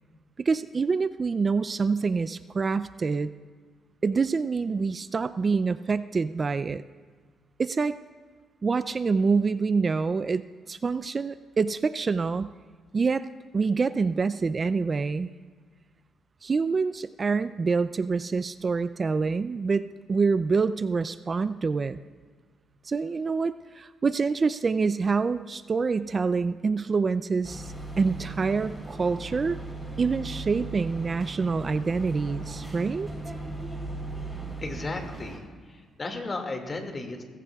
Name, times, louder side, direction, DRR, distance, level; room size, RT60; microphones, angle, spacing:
voice 1, 0.4-3.3 4.0-6.8 7.6-8.0 8.6-12.5 12.9-13.3 13.5-15.3 16.4-22.0 22.8-29.6 30.0-33.1, right 4 dB, 35° right, 13 dB, 0.4 m, -26 dB
sound 1, 27.4-35.4, right 2 dB, ahead, 3.6 m, -37 dB
voice 2, 34.6-35.4 35.7-37.2, left 2 dB, 35° left, 4 dB, 2.1 m, -34 dB
20.0 x 16.0 x 2.3 m, 1.6 s
cardioid pair, 90°, 0 cm